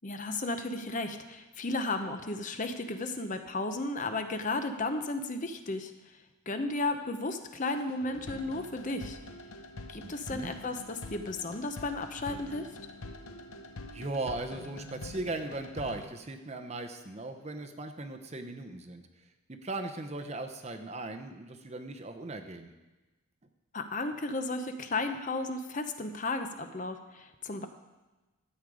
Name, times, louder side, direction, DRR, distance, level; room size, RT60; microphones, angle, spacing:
voice 1, 0.0-5.9 6.5-9.2 9.9-12.7 23.7-27.7, left 2 dB, 35° left, 7 dB, 0.7 m, -34 dB
sound 1, 7.8-16.0, left 2 dB, 80° left, 0.9 m, -45 dB
voice 2, 10.0-10.5 13.9-19.0 19.6-22.7, right 2 dB, 30° right, 6 dB, 0.7 m, -38 dB
13.0 x 8.4 x 4.9 m, 1.1 s
head